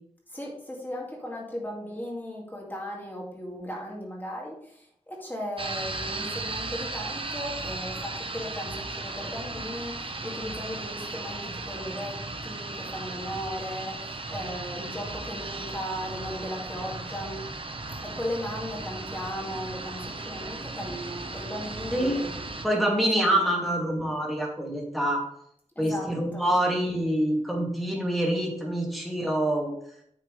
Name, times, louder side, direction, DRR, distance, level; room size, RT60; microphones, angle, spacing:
voice 1, 0.3-17.4 18.0-22.3 23.1-23.6 25.8-26.5, equal, 15° left, -3 dB, 2.2 m, -37 dB
sound 1, 5.6-22.7, right 2 dB, 45° right, 0.9 m, -36 dB
voice 2, 22.6-25.2 25.8-29.7, right 1 dB, ahead, -2 dB, 2.5 m, -26 dB
9.3 x 6.5 x 3.3 m, 0.69 s
wide cardioid pair, 75°, 12 cm